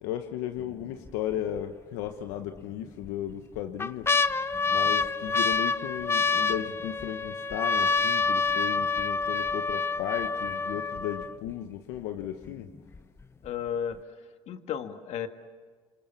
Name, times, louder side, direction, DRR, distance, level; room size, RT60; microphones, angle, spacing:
voice 1, 0.0-4.1 4.7-12.7, left 11 dB, 85° left, 7 dB, 1.2 m, -35 dB
sound 1, 0.6-1.1 1.6-1.7 2.6-3.1 3.5-11.5 12.2-12.3 12.5-13.0 13.4-13.5, left 4 dB, 20° left, 0.7 m, -27 dB
voice 2, 13.4-14.2 14.5-15.3, left 8 dB, 65° left, 7 dB, 1.9 m, -33 dB
28.0 x 25.5 x 7.3 m, 1.5 s
supercardioid pair, 95°, 12 cm